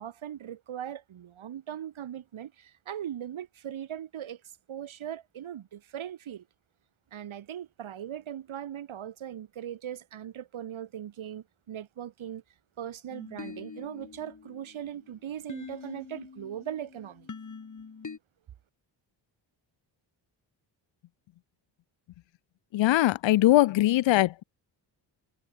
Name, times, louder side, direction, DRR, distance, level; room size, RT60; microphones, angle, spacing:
voice 1, 0.0-4.4 4.7-6.5 7.1-12.4 12.8-17.3, right 10 dB, 75° right, 3.2 m, -39 dB
sound 1, 13.1-18.2, left 5 dB, 35° left, 3.7 m, -45 dB
voice 2, 22.7-24.4, left 15 dB, 65° left, 0.6 m, -21 dB
cardioid pair, 75°, 48 cm